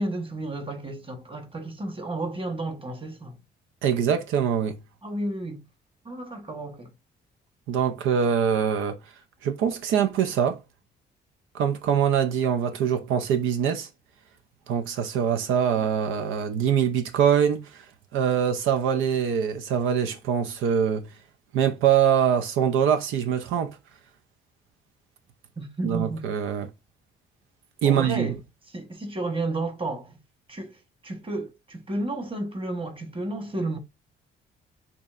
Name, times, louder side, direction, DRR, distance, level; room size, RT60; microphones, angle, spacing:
voice 1, 0.0-3.4 5.0-5.6 6.0-6.9 25.6-26.3 27.8-28.4 28.7-30.2 30.5-33.8, right 2 dB, 25° right, 1.2 m, -32 dB
voice 2, 3.8-4.8 7.7-9.0 9.4-10.6 11.5-13.9 14.7-17.9 18.1-21.1 21.5-23.8 25.8-26.7 27.8-28.3, right 8 dB, 90° right, 0.6 m, -23 dB
6.7 x 2.9 x 2.5 m
cardioid pair, 90°, 20 cm